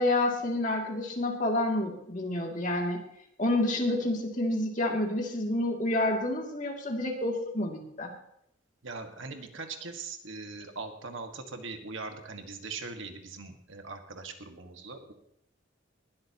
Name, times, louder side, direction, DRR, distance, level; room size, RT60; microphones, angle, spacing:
voice 1, 0.0-3.0 3.4-8.1, left 1 dB, 40° left, 1 dB, 2.5 m, -29 dB
voice 2, 8.8-15.1, right 4 dB, 75° right, 5 dB, 1.7 m, -41 dB
20.0 x 13.0 x 2.9 m, 0.76 s
head